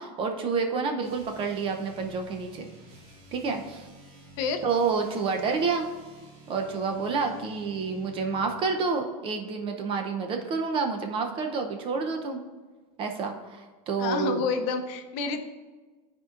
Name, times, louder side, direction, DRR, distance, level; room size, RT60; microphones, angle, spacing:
voice 1, 0.0-2.7 3.3-3.9 4.6-5.9 6.5-12.4 13.0-14.4, right 5 dB, 25° right, 4 dB, 0.6 m, -29 dB
sound 1, 1.0-8.5, right 3 dB, 65° right, 1.9 m, -50 dB
voice 2, 14.0-15.4, left 5 dB, 45° left, 6 dB, 0.6 m, -29 dB
12.5 x 4.4 x 2.4 m, 1.3 s
supercardioid pair, 160°, 20 cm